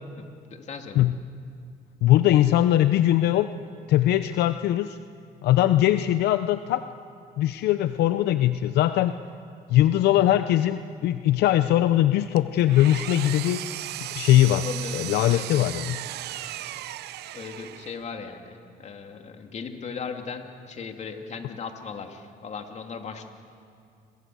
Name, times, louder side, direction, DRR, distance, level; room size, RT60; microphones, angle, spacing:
voice 1, 0.2-1.1 14.6-15.6 17.3-23.3, left 5 dB, 45° left, 4 dB, 2.7 m, -38 dB
voice 2, 2.0-3.5 3.9-5.0 5.4-6.9 7.4-9.2 9.7-13.6 14.1-14.7 14.9-16.0, left 13 dB, 75° left, 11 dB, 0.7 m, -21 dB
Engine, 12.4-18.1, right 14 dB, 75° right, 0.8 m, -36 dB
29.5 x 22.5 x 7.8 m, 2.4 s
cardioid pair, 110°, 17 cm